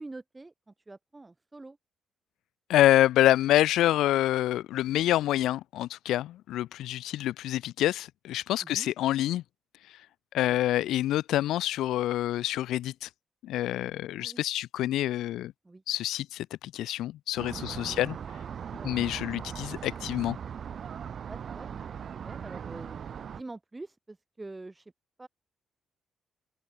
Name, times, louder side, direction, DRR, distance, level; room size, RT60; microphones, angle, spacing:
voice 1, 0.0-1.8 8.6-8.9 10.5-10.6 14.2-14.4 15.6-15.8 17.8-18.0 18.7-19.0 21.3-21.8 22.2-23.0 23.3-24.9 25.2-25.3, right 2 dB, 20° right, 2.9 m, -45 dB
voice 2, 2.7-9.4 10.3-13.1 13.4-15.5 15.9-16.5 16.7-18.2 18.8-20.4, left 14 dB, 85° left, 1.2 m, -27 dB
sound 1, 17.4-23.4, right 7 dB, 55° right, 2.2 m, -39 dB
open air
cardioid pair, 90°, 0 cm